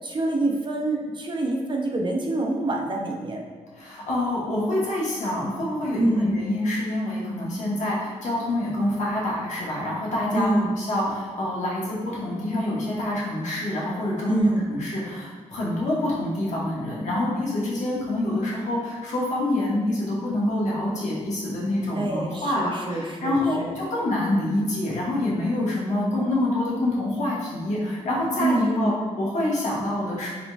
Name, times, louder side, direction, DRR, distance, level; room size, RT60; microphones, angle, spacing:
voice 1, 0.0-3.4 6.0-6.3 10.3-10.7 14.3-14.7 22.0-23.7 28.4-29.0, right 2 dB, 40° right, 1 dB, 0.5 m, -26 dB
voice 2, 3.7-10.5 10.8-28.9 29.2-30.3, left 1 dB, 70° left, -5 dB, 1.1 m, -26 dB
3.9 x 3.1 x 2.3 m, 1.5 s
cardioid pair, 65°, 13 cm